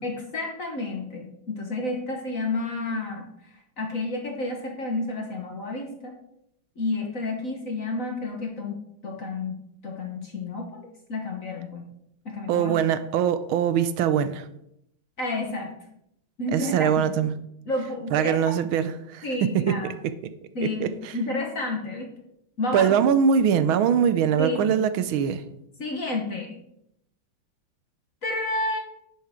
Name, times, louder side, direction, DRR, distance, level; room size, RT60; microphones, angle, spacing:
voice 1, 0.0-6.2 6.8-9.6 9.8-10.8 11.1-11.8 12.2-12.7 15.2-15.7 16.4-17.1 17.7-18.4 19.2-19.9 20.5-22.1 22.6-22.9 24.4-24.8 25.8-26.6 28.2-28.8, left 2 dB, 45° left, 1.6 m, -30 dB
voice 2, 12.5-14.5 16.5-17.3 18.1-19.8 20.0-20.1 20.6-21.1 22.7-25.4, right 8 dB, 85° right, 1.5 m, -22 dB
10.5 x 10.0 x 3.7 m
omnidirectional pair, 2.2 m